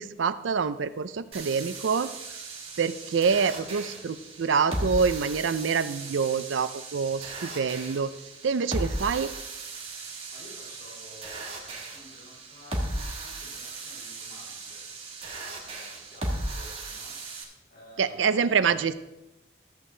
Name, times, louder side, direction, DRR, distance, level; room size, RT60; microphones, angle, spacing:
voice 1, 0.0-2.1 2.8-8.1 8.4-9.3 18.0-18.9, right 5 dB, 85° right, 13 dB, 0.5 m, -26 dB
sound 1, 1.3-17.4, right 2 dB, 30° right, 1.4 m, -37 dB
voice 2, 10.3-14.9 15.5-17.2 17.7-18.7, left 1 dB, 50° left, -2 dB, 3.9 m, -51 dB
13.5 x 7.4 x 3.3 m, 0.97 s
head